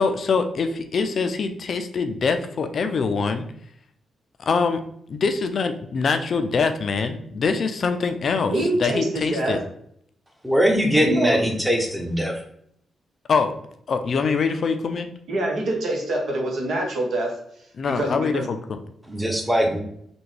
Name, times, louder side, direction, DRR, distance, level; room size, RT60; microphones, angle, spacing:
voice 1, 0.0-3.4 4.4-4.8 5.1-9.6 13.3-13.5 13.9-15.1 17.8-18.8, left 5 dB, 60° left, 8 dB, 0.3 m, -24 dB
voice 2, 8.5-9.6 10.9-11.4 15.3-17.3 18.0-18.5, right 1 dB, 70° right, 0 dB, 0.8 m, -25 dB
voice 3, 10.4-12.3 19.1-19.8, equal, 10° right, 2 dB, 0.9 m, -21 dB
3.4 x 2.2 x 3.2 m, 0.69 s
hypercardioid pair, 40°, 0 cm